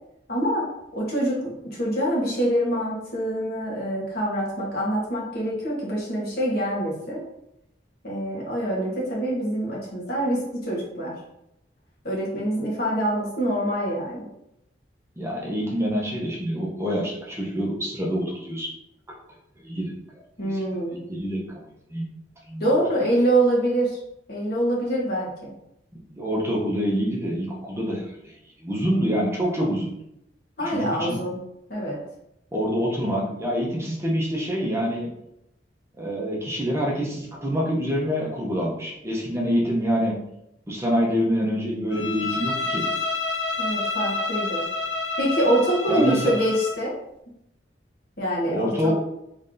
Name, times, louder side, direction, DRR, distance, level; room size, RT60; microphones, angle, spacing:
voice 1, 0.3-0.7 0.9-7.2 8.0-11.1 12.0-14.3 20.4-21.0 22.6-24.0 24.3-25.5 30.6-31.4 31.7-32.0 43.6-44.6 45.2-47.0 48.2-48.9, right 1 dB, 55° left, -4 dB, 1.2 m, -25 dB
voice 2, 15.2-18.7 19.6-19.9 20.4-20.6 20.9-21.6 21.9-22.1 22.5-22.7 26.1-29.9 30.6-31.2 32.5-35.1 36.0-40.2 40.7-42.8 45.9-46.3 48.5-48.9, equal, 15° right, -4 dB, 0.6 m, -26 dB
Bowed string instrument, 41.9-46.8, left 3 dB, 80° left, 0.6 m, -28 dB
3.2 x 2.7 x 3.7 m, 0.81 s
head